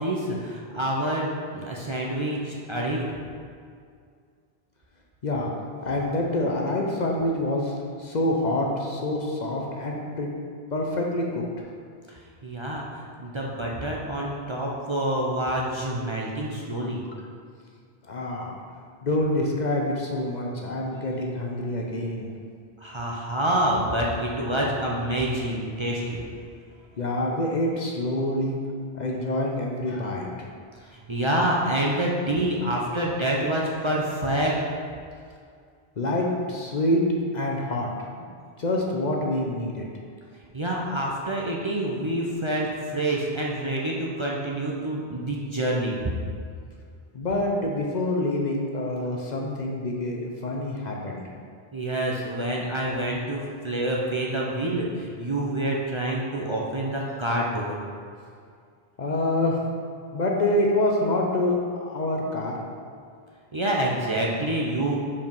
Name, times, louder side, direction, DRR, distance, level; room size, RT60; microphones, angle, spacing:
voice 1, 0.0-3.1 12.1-17.0 22.8-26.2 30.8-34.6 40.5-46.0 51.7-57.8 63.5-65.0, right 1 dB, 35° right, -3 dB, 0.6 m, -27 dB
voice 2, 5.8-10.3 10.7-11.4 18.1-18.6 19.0-22.3 27.0-28.5 28.9-30.5 36.0-37.0 37.3-37.9 38.2-38.3 38.6-39.9 47.1-51.2 59.0-59.7 60.1-62.6, left 1 dB, 50° left, 0 dB, 0.7 m, -26 dB
5.2 x 4.8 x 5.3 m, 2.2 s
omnidirectional pair, 1.1 m